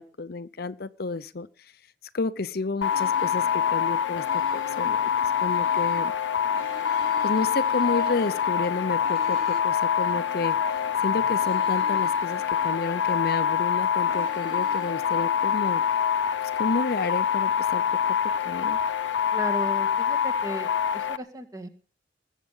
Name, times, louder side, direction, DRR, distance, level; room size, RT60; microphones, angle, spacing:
voice 1, 0.0-1.5 2.1-6.1 6.9-15.8 16.6-17.8 18.4-18.8, left 3 dB, 55° left, 0.7 m, -31 dB
sound 1, 2.8-21.2, left 8 dB, 90° left, 0.8 m, -25 dB
sound 2, 2.9-6.1 6.4-9.6 10.0-13.3 13.8-16.0, right 2 dB, 50° right, 3.9 m, -45 dB
voice 2, 19.3-20.7 20.9-21.7, equal, 20° right, 1.9 m, -35 dB
20.5 x 8.2 x 5.5 m
head